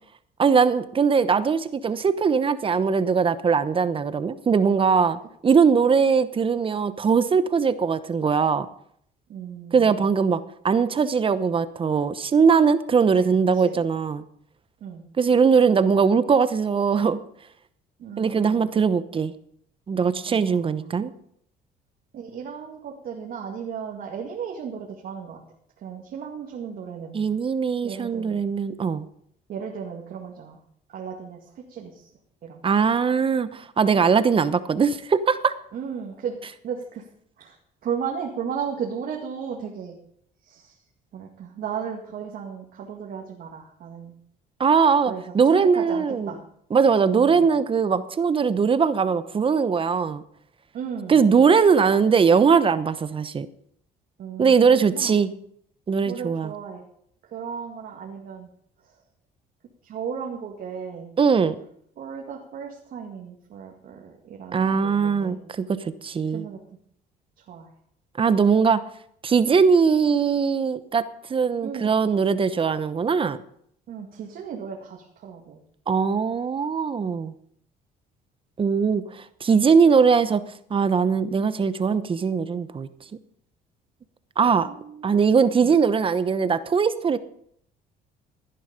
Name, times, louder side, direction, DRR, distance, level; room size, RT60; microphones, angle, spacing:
voice 1, 0.4-8.7 9.7-10.4 10.6-14.2 15.2-17.2 18.2-19.3 19.9-21.1 27.1-29.0 32.6-35.5 44.6-46.3 46.7-50.2 51.1-53.5 54.4-55.3 55.9-56.5 61.2-61.6 64.5-66.5 68.2-68.8 69.2-71.0 71.3-73.4 75.9-77.3 78.6-80.4 80.7-82.9 84.4-84.7 85.0-87.2, right 6 dB, 30° right, 14 dB, 0.9 m, -20 dB
voice 2, 9.3-10.0 13.2-13.3 13.5-14.0 14.8-15.0 18.0-18.7 20.3-20.9 22.1-25.4 25.8-27.3 27.8-28.4 29.5-30.6 30.9-32.0 32.4-32.6 35.7-36.4 36.6-37.0 37.4-37.6 37.8-40.0 40.4-40.7 41.1-44.2 45.1-46.4 47.2-47.5 50.7-51.2 54.2-55.2 56.1-56.8 57.3-58.5 59.8-61.1 62.0-65.4 66.3-66.6 67.5-67.7 71.6-71.9 73.9-75.6 84.6-85.2 85.6-85.7, right 7 dB, 60° right, 0 dB, 2.2 m, -35 dB
17.0 x 10.0 x 5.2 m, 0.67 s
cardioid pair, 110°, 17 cm